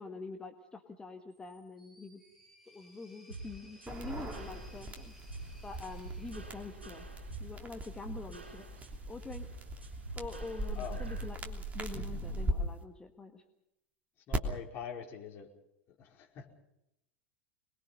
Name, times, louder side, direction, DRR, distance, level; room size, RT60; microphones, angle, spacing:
voice 1, 0.0-2.2 2.6-5.1 5.6-7.1 7.4-9.5 10.1-13.4, left 3 dB, 15° left, 5 dB, 1.6 m, -45 dB
sound 1, 1.3-7.5, left 1 dB, 5° right, 5.8 m, -62 dB
sound 2, 3.3-11.3, right 3 dB, 85° right, 6.2 m, -47 dB
sound 3, 3.9-12.5 14.3-14.4, right 1 dB, 25° right, 3.1 m, -40 dB
voice 2, 14.3-15.5 16.0-16.5, left 7 dB, 40° left, 1 dB, 4.7 m, -44 dB
26.5 x 21.5 x 5.7 m, 0.86 s
figure-of-eight pair, 85°, 6 cm